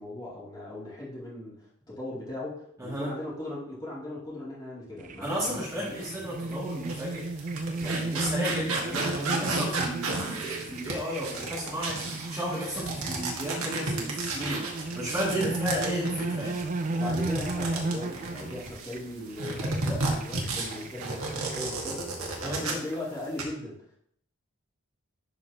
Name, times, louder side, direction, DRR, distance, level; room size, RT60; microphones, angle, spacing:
voice 1, 0.0-1.6 1.9-5.9 15.3-15.5 16.9-24.0, left 1 dB, 20° left, -8 dB, 2.8 m, -38 dB
voice 2, 2.8-3.1 5.2-7.2 7.8-16.6 22.4-22.7, equal, 15° right, -8 dB, 2.4 m, -33 dB
sound 1, 5.0-21.6, right 2 dB, 35° right, 0.4 m, -35 dB
sound 2, 6.0-6.1 6.7-19.0 19.4-22.9 23.2-23.4, right 3 dB, 70° right, 1.7 m, -33 dB
11.0 x 4.9 x 2.9 m, 0.66 s
head